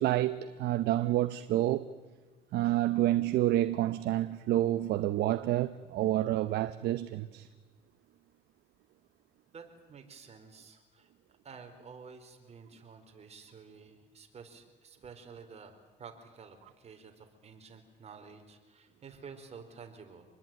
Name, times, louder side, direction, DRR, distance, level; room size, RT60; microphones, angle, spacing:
voice 1, 0.0-1.9 2.5-7.5, right 14 dB, 75° right, 0.9 m, -28 dB
voice 2, 9.5-11.1 11.4-15.7 16.0-20.3, right 5 dB, 40° right, 4.4 m, -51 dB
26.5 x 21.0 x 9.1 m
cardioid pair, 110°, 17 cm